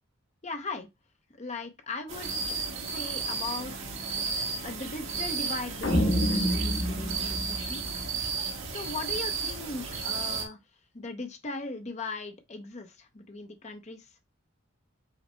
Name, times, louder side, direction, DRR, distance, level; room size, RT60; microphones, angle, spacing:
voice 1, 0.4-0.9 1.4-2.3 2.8-3.7 4.6-7.8 8.7-10.6 10.9-14.1, left 3 dB, 35° left, 0.7 m, -38 dB
sound 1, 2.1-10.5, right 4 dB, 65° right, 1.5 m, -33 dB
sound 2, 5.8-8.3, equal, 55° left, 1.1 m, -28 dB
5.8 x 2.1 x 4.3 m
head